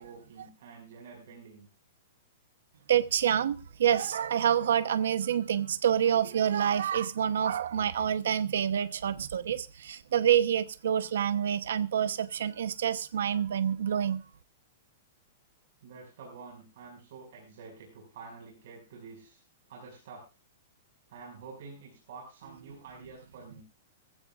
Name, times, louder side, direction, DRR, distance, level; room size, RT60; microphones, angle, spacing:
voice 1, 0.0-1.7 15.8-19.4 19.7-20.2 21.1-23.6, right 4 dB, 55° right, 5.8 m, -48 dB
voice 2, 2.9-14.2, right 9 dB, 80° right, 0.9 m, -27 dB
21.0 x 15.5 x 2.5 m
supercardioid pair, 175°, 0 cm